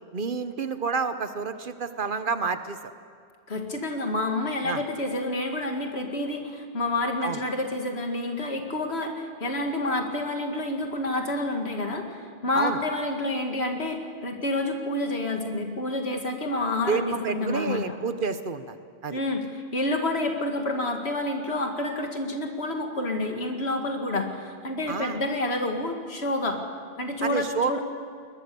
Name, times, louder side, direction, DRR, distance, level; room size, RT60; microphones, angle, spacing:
voice 1, 0.1-2.8 4.7-4.8 7.2-7.4 12.5-12.8 16.9-18.7 19.0-19.2 24.9-25.2 27.2-27.7, right 5 dB, 55° right, 10 dB, 1.1 m, -29 dB
voice 2, 3.5-18.0 19.1-26.6 27.0-27.8, left 2 dB, 80° left, 3 dB, 2.3 m, -29 dB
21.0 x 20.5 x 6.9 m, 2.2 s
omnidirectional pair, 1.1 m